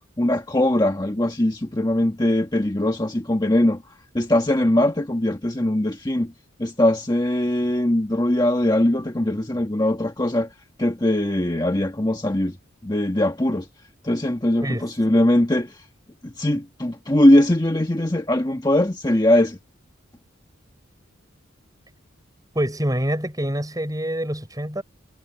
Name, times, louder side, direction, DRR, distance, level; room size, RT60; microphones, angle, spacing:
voice 1, 0.2-3.8 4.1-6.3 6.6-10.5 10.8-12.6 12.8-13.7 14.0-15.8 16.2-19.6, left 1 dB, 20° left, 1.4 m, -21 dB
voice 2, 22.6-24.8, equal, 20° right, 7.1 m, -26 dB
head